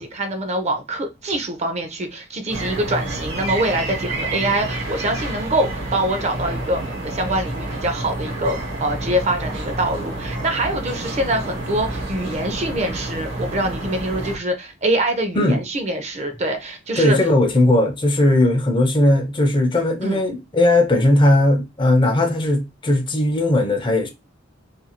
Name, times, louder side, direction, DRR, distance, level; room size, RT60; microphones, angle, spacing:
voice 1, 0.0-17.2 20.0-20.2, right 1 dB, 35° right, 0.5 m, -24 dB
sound 1, 2.5-14.4, right 2 dB, 60° right, 1.0 m, -29 dB
voice 2, 17.0-24.1, left 1 dB, 25° left, 0.5 m, -17 dB
2.5 x 2.3 x 2.8 m
head